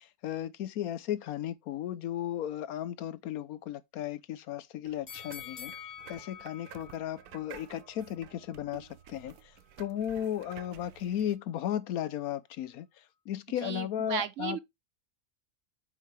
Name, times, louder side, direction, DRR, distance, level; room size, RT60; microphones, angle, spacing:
voice 1, 0.0-5.7 6.1-9.3 9.8-12.9 13.3-14.6, left 11 dB, 75° left, 1.1 m, -35 dB
sound 1, 4.9-11.4, right 12 dB, 80° right, 1.1 m, -52 dB
sound 2, 5.1-8.2 8.6-8.7, left 8 dB, 35° left, 0.6 m, -47 dB
voice 2, 13.6-14.6, right 10 dB, 65° right, 0.8 m, -35 dB
8.2 x 5.7 x 3.1 m
omnidirectional pair, 1.6 m